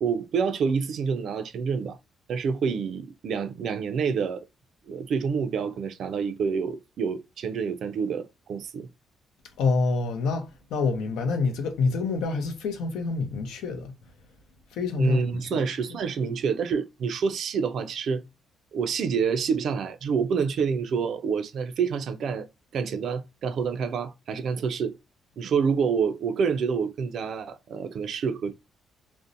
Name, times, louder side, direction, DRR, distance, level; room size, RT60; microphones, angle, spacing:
voice 1, 0.0-2.0 2.3-4.4 4.9-8.9 15.0-18.2 18.7-22.5 22.7-24.9 25.4-28.5, right 6 dB, 65° right, 0.3 m, -27 dB
voice 2, 9.6-13.9 14.7-15.6, left 4 dB, 85° left, 0.5 m, -27 dB
2.5 x 2.1 x 2.5 m
cardioid pair, 90°, 0 cm